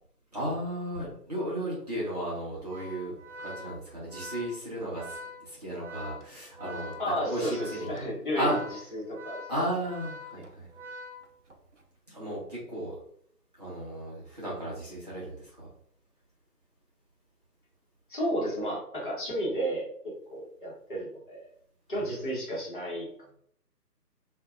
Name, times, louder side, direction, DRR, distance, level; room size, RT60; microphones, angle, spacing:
voice 1, 0.3-7.9 8.4-8.6 9.5-10.7 12.1-13.0 13.6-15.5 22.0-22.3, right 1 dB, 25° right, -8 dB, 0.9 m, -34 dB
Organ, 2.6-11.7, left 1 dB, 50° right, 0.5 m, -44 dB
voice 2, 7.0-8.6 8.9-9.4 18.1-21.5 21.9-23.1, equal, 30° left, -6 dB, 1.2 m, -32 dB
4.7 x 2.5 x 2.4 m, 0.64 s
figure-of-eight pair, 150°, 49 cm